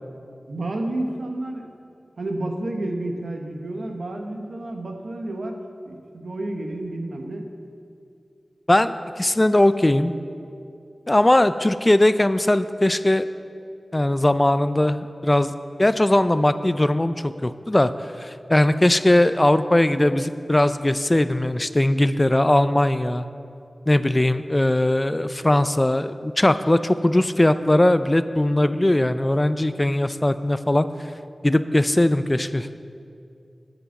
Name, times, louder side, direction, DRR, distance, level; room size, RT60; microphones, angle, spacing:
voice 1, 0.5-1.7 2.2-5.6 5.9-7.5, right 1 dB, 90° right, 3 dB, 1.2 m, -30 dB
voice 2, 8.7-10.1 11.1-13.3 13.9-15.5 15.8-17.9 18.2-23.3 23.9-30.9 31.4-32.7, left 1 dB, 20° left, 12 dB, 0.4 m, -19 dB
9.2 x 8.8 x 7.0 m, 2.5 s
wide cardioid pair, 80°, 0 cm